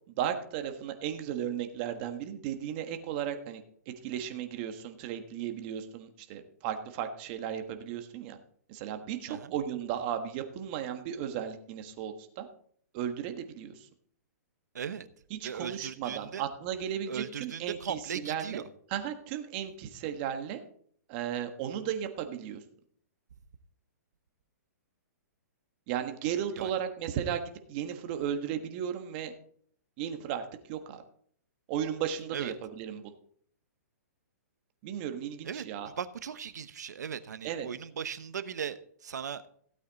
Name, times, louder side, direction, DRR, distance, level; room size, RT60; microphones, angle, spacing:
voice 1, 0.1-3.6 4.0-8.4 8.7-12.5 12.9-13.9 15.3-18.6 18.9-20.6 21.1-22.6 25.9-27.4 27.7-29.3 30.0-31.0 31.7-33.1 34.8-35.9 37.4-37.7, right 9 dB, 35° right, 7 dB, 1.4 m, -35 dB
voice 2, 14.7-15.1 15.4-16.4 17.1-18.6 26.6-26.7 32.3-32.5 35.4-39.5, right 7 dB, 85° right, 13 dB, 1.0 m, -38 dB
16.0 x 8.4 x 4.1 m, 0.62 s
hypercardioid pair, 160°, 9 cm